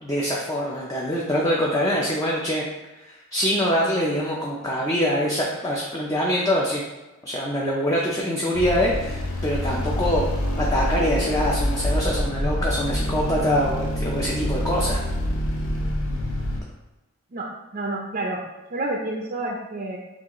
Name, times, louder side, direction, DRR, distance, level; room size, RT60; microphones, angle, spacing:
voice 1, 0.0-2.6 3.0-6.8 7.2-10.3 10.6-15.0, equal, 15° left, -4 dB, 0.5 m, -24 dB
sound 1, 8.5-16.6, left 1 dB, 85° left, 0.6 m, -26 dB
voice 2, 17.3-18.4 18.7-20.0, right 2 dB, 40° right, -1 dB, 0.5 m, -29 dB
6.0 x 2.5 x 3.0 m, 1.1 s
head